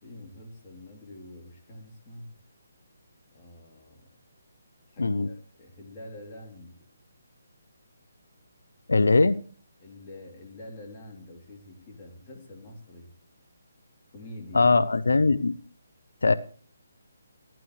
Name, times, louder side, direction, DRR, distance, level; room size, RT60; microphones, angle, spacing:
voice 1, 0.0-2.3 3.3-4.1 4.9-6.8 9.8-13.1 14.1-14.7, left 1 dB, 25° left, 3.1 m, -46 dB
voice 2, 5.0-5.3 8.9-9.4 14.5-15.5 16.2-16.3, left 3 dB, 90° left, 0.6 m, -20 dB
16.0 x 12.0 x 3.2 m
hypercardioid pair, 160°, 0 cm